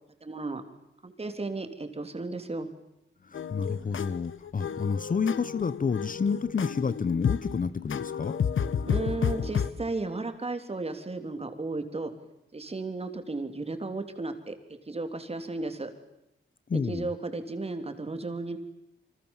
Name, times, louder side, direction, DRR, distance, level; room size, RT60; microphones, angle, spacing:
voice 1, 0.2-0.6 1.0-2.7 8.9-12.1 12.5-14.5 14.9-15.9 16.7-18.6, right 3 dB, 30° right, 7 dB, 3.4 m, -34 dB
sound 1, 3.3-9.7, left 7 dB, 70° left, 1.3 m, -31 dB
voice 2, 3.3-8.4 16.7-17.1, left 5 dB, 40° left, 16 dB, 0.9 m, -29 dB
28.5 x 25.5 x 7.3 m, 0.83 s
wide cardioid pair, 115°, 21 cm